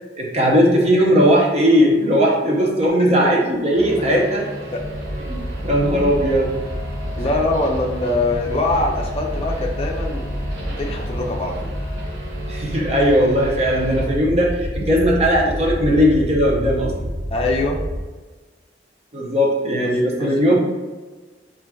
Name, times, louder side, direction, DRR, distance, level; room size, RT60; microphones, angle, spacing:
voice 1, 0.2-4.4 5.3-6.5 12.5-17.1 19.1-20.6, equal, 35° right, -2 dB, 0.7 m, -18 dB
voice 2, 3.0-3.3 4.7-4.8 7.1-10.3 10.8-11.7 17.3-17.8 19.8-19.9 20.2-20.6, left 2 dB, 35° left, 1 dB, 0.5 m, -23 dB
sound 1, 3.7-14.0, equal, 70° right, 0.8 m, -33 dB
sound 2, 4.8-18.0, equal, 15° left, 1.2 m, -29 dB
5.7 x 2.5 x 2.3 m, 1.3 s
head